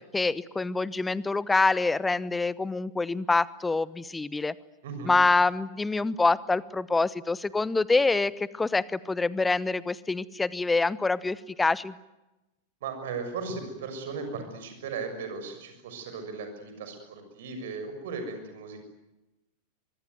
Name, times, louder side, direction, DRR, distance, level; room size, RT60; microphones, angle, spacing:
voice 1, 0.1-4.5 5.0-12.0, left 3 dB, 10° left, 20 dB, 0.9 m, -26 dB
voice 2, 12.8-18.8, right 4 dB, 55° right, 7 dB, 6.6 m, -37 dB
24.5 x 23.0 x 9.5 m, 1.0 s
figure-of-eight pair, 90°, 0 cm